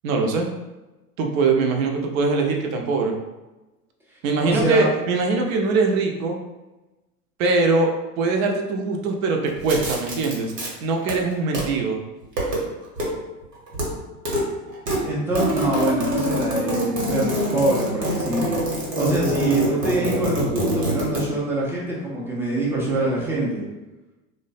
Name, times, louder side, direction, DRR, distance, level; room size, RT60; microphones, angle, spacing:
voice 1, 0.0-0.5 1.2-3.1 4.2-6.4 7.4-7.9 8.2-10.5 10.8-12.0, right 3 dB, 60° right, 2 dB, 0.6 m, -22 dB
voice 2, 4.4-4.8 15.0-18.5 19.0-23.7, right 2 dB, 5° right, -6 dB, 0.3 m, -24 dB
sound 1, 9.6-10.7 11.0-11.6 12.2-12.6 12.9-13.1 13.4-13.9 14.1-14.4 14.7-21.2, equal, 90° right, 1.0 m, -25 dB
2.4 x 2.1 x 2.4 m, 1.1 s
hypercardioid pair, 90°, 47 cm